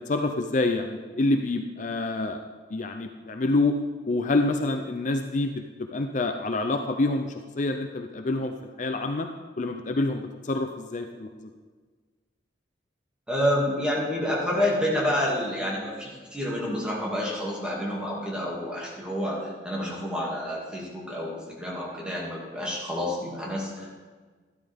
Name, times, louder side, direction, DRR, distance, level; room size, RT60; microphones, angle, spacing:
voice 1, 0.1-2.4 2.7-3.8 4.1-9.3 9.6-11.5, left 2 dB, 45° left, 5 dB, 0.5 m, -27 dB
voice 2, 13.3-23.9, left 1 dB, 5° right, -5 dB, 2.3 m, -29 dB
13.0 x 12.0 x 3.5 m, 1.5 s
head